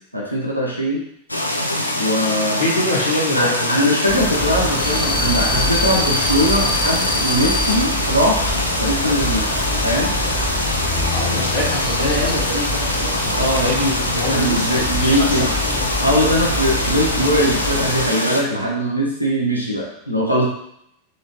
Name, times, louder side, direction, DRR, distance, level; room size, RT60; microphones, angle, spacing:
voice 1, 0.1-1.0 2.0-2.7 3.3-8.5 8.8-9.5 9.8-10.1 13.4-13.7 14.1-15.5 16.0-20.4, equal, 90° right, -3 dB, 0.6 m, -20 dB
sound 1, 1.3-18.4, left 1 dB, 85° left, 0.3 m, -23 dB
voice 2, 2.6-3.7 11.0-15.9, left 1 dB, 65° left, -9 dB, 1.1 m, -25 dB
sound 2, 4.1-18.1, left 1 dB, 15° left, 0.5 m, -25 dB
3.1 x 3.0 x 2.8 m, 0.75 s
figure-of-eight pair, 90°, 0 cm